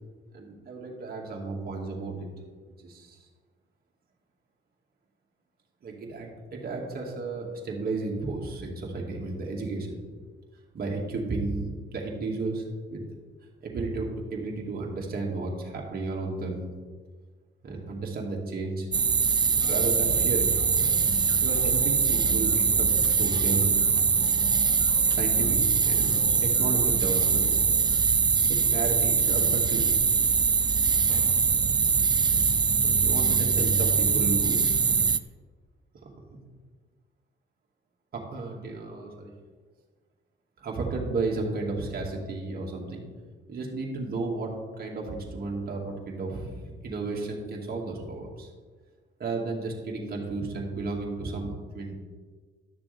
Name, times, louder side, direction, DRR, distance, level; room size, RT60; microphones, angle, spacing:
voice 1, 0.3-2.3 2.8-3.2 5.8-10.0 10.7-13.0 13.6-16.7 17.6-18.9 19.6-20.5 21.4-23.7 25.1-27.6 28.5-29.9 31.1-31.4 32.8-34.9 38.1-39.3 40.6-43.0 43.5-46.5 46.8-48.5 49.2-51.9, right 3 dB, 50° right, -1 dB, 2.3 m, -33 dB
sound 1, 18.9-35.2, right 5 dB, 20° right, 0.3 m, -23 dB
sound 2, 19.6-27.3, left 2 dB, 75° left, 2.1 m, -44 dB
sound 3, 21.1-28.0, left 3 dB, 40° left, 1.3 m, -50 dB
12.0 x 6.8 x 3.5 m, 1.5 s
cardioid pair, 90°, 20 cm